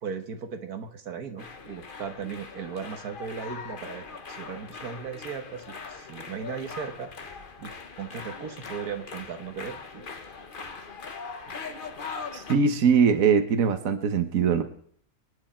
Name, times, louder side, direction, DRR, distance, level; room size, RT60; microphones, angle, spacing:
voice 1, 0.0-7.7 8.0-10.0, right 6 dB, 85° right, 7 dB, 1.8 m, -37 dB
sound 1, 1.4-12.6, left 4 dB, 40° left, 1.2 m, -41 dB
voice 2, 12.3-14.6, right 6 dB, 65° right, 8 dB, 1.5 m, -22 dB
26.0 x 9.8 x 4.4 m, 0.63 s
omnidirectional pair, 1.6 m